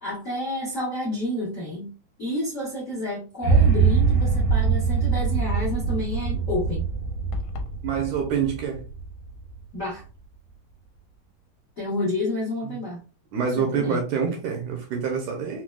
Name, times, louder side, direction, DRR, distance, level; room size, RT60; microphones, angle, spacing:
voice 1, 0.0-1.9 2.2-6.9 9.7-10.0 11.8-13.0 13.5-14.0, left 1 dB, 55° left, -5 dB, 0.8 m, -29 dB
sound 1, 3.4-9.6, right 5 dB, 90° right, 2.9 m, -23 dB
sound 2, 7.3-7.8, left 7 dB, 85° left, 2.3 m, -35 dB
voice 2, 7.8-8.8 13.3-15.6, right 6 dB, 75° right, 1 dB, 1.9 m, -26 dB
5.9 x 2.3 x 2.3 m, 0.33 s
omnidirectional pair, 4.0 m